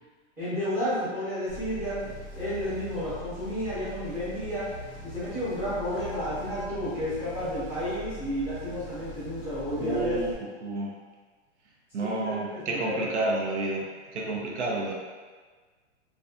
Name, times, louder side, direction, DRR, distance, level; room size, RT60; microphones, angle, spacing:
voice 1, 0.4-4.7 5.0-10.2 12.0-13.0, equal, 5° right, -13 dB, 0.7 m, -32 dB
sound 1, 1.5-10.3, left 1 dB, 30° left, 0.5 m, -42 dB
voice 2, 9.8-10.3 10.6-10.9 11.9-13.8 14.1-14.9, right 2 dB, 75° right, -2 dB, 0.7 m, -30 dB
2.6 x 2.3 x 2.4 m, 1.4 s
hypercardioid pair, 165°, 35 cm